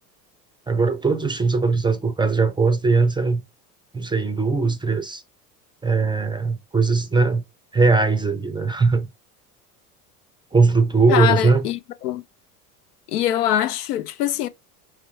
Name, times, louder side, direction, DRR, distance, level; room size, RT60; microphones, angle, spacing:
voice 1, 0.7-3.4 3.9-5.2 5.8-7.4 7.7-9.1 10.5-11.7, right 4 dB, 10° right, 0.4 m, -20 dB
voice 2, 11.1-12.2 13.1-14.5, left 11 dB, 75° left, 0.6 m, -23 dB
4.8 x 3.2 x 3.2 m
hypercardioid pair, 75°, 47 cm